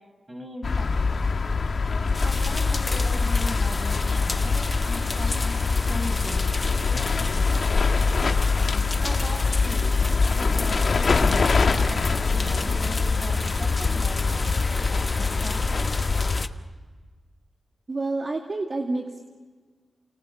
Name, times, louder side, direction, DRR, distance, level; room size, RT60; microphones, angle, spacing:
voice 1, 0.3-1.6 2.2-6.4 6.9-8.3 8.9-15.9, equal, 25° right, 5 dB, 6.2 m, -39 dB
sound 1, 0.6-16.4, left 4 dB, 60° left, 1.6 m, -24 dB
sound 2, 2.1-16.5, left 2 dB, 35° left, 1.1 m, -33 dB
voice 2, 17.9-19.2, right 2 dB, 40° right, 2 dB, 2.3 m, -28 dB
29.0 x 27.0 x 7.3 m, 1.5 s
wide cardioid pair, 85°, 0 cm